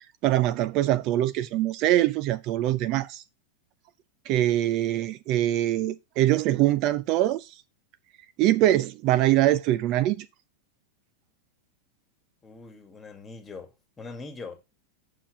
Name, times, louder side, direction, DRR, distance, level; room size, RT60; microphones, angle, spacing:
voice 1, 0.2-3.2 4.3-7.5 8.4-10.3, right 14 dB, 45° right, 0.5 m, -23 dB
voice 2, 12.4-14.6, left 3 dB, 20° left, 1.9 m, -42 dB
5.8 x 4.5 x 5.9 m
hypercardioid pair, 115°, 0 cm